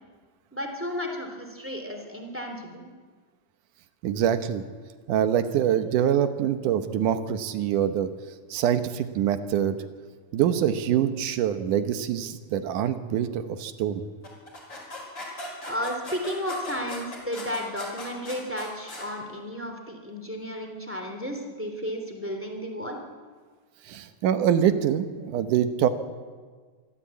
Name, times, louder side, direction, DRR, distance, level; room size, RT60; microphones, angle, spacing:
voice 1, 0.5-2.9 15.6-23.0, equal, 5° right, 3 dB, 2.6 m, -33 dB
voice 2, 4.0-4.6 5.1-8.1 8.5-9.8 10.3-14.0 23.9-25.9, right 9 dB, 80° right, 10 dB, 2.6 m, -25 dB
sound 1, 14.2-19.1, left 1 dB, 35° left, 5.4 m, -39 dB
25.0 x 13.0 x 8.4 m, 1.5 s
omnidirectional pair, 3.7 m